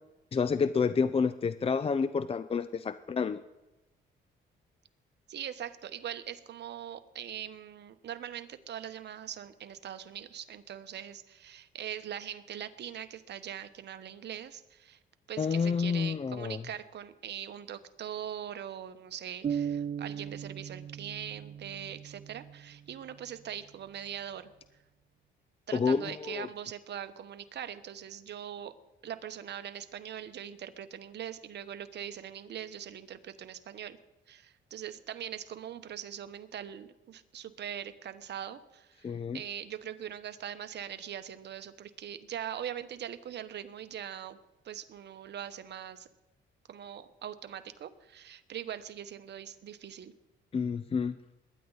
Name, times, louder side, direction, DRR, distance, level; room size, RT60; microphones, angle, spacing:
voice 1, 0.3-3.4 15.4-16.6 25.7-26.5 39.0-39.4 50.5-51.2, left 5 dB, 30° left, 13 dB, 0.5 m, -29 dB
voice 2, 5.3-15.0 15.3-24.5 25.7-28.7 29.0-34.0 34.3-44.4 44.6-46.1 46.7-50.1, right 9 dB, 60° right, 10 dB, 1.0 m, -42 dB
sound 1, 19.4-23.2, right 8 dB, 35° right, 0.4 m, -37 dB
21.5 x 10.0 x 4.0 m, 1.0 s
cardioid pair, 90°, 20 cm